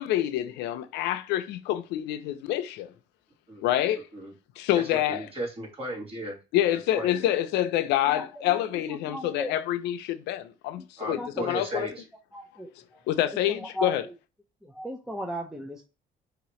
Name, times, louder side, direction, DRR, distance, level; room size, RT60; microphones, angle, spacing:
voice 1, 0.0-2.9 3.6-4.1 4.6-5.3 6.5-11.9 13.1-14.0, left 13 dB, 90° left, 0.5 m, -27 dB
voice 2, 4.7-6.4 6.7-7.3 11.0-11.9, right 1 dB, 35° right, 2.6 m, -36 dB
voice 3, 8.1-9.5 10.8-11.8 12.3-13.0 13.5-14.1 14.6-15.9, equal, 5° right, 0.6 m, -37 dB
4.8 x 2.9 x 3.0 m
cardioid pair, 110°, 17 cm